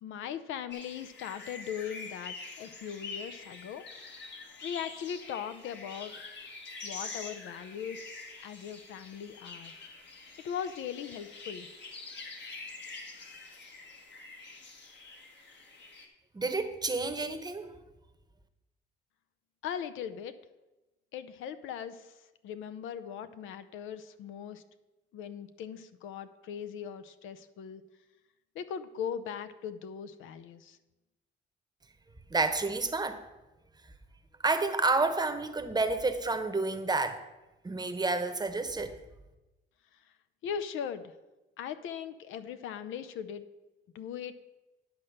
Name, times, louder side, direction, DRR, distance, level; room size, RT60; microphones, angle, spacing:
voice 1, 0.0-3.9 4.6-6.1 6.8-9.8 10.4-11.7 19.6-20.4 21.1-22.2 22.4-24.6 25.1-27.8 28.5-30.8 40.0-40.1 40.4-41.1 41.6-43.4 43.9-44.3, left 8 dB, 85° left, 12 dB, 0.6 m, -39 dB
sound 1, 0.7-16.1, left 3 dB, 60° left, 1.5 m, -46 dB
voice 2, 16.3-17.7 32.3-33.2 34.4-37.2 37.6-38.9, right 3 dB, 20° right, 8 dB, 0.8 m, -29 dB
10.5 x 4.3 x 6.5 m, 1.1 s
cardioid pair, 90°, 20 cm